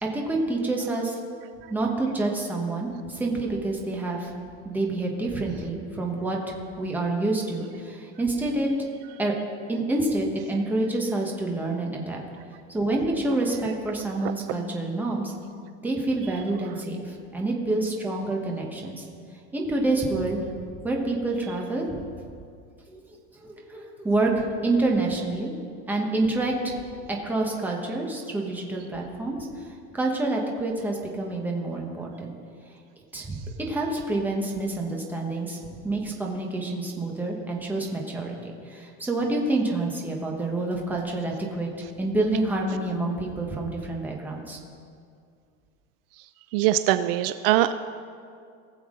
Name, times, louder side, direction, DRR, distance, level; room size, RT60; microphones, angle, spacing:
voice 1, 0.0-1.1 1.7-4.3 4.6-8.7 9.2-9.3 9.7-12.2 12.7-15.3 15.8-19.1 19.5-20.4 20.8-22.0 22.9-23.0 23.4-25.5 25.9-32.3 33.1-41.7 42.0-44.6, right 2 dB, 5° right, -1 dB, 1.0 m, -28 dB
voice 2, 46.5-47.7, right 13 dB, 65° right, 12 dB, 0.4 m, -22 dB
19.0 x 7.1 x 3.7 m, 2.3 s
cardioid pair, 175°, 31 cm